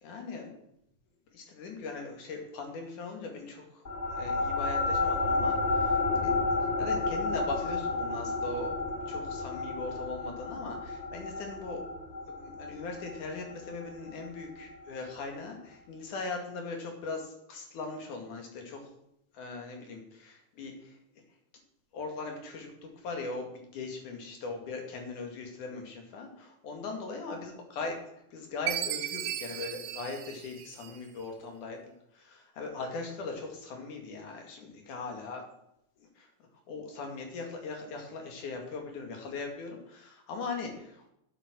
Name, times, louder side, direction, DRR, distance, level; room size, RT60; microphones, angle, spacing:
voice 1, 0.0-0.5 1.3-3.8 4.1-6.3 6.8-8.8 9.1-11.9 12.3-18.9 19.3-21.0 21.9-22.7 23.0-28.0 28.3-35.4 36.0-36.3 36.7-41.1, left 3 dB, 90° left, 3 dB, 3.7 m, -40 dB
sound 1, 3.8-14.6, left 3 dB, 50° left, 0.8 m, -31 dB
Chime, 28.7-31.2, right 12 dB, 75° right, 2.0 m, -36 dB
9.8 x 8.4 x 6.3 m, 0.78 s
omnidirectional pair, 3.5 m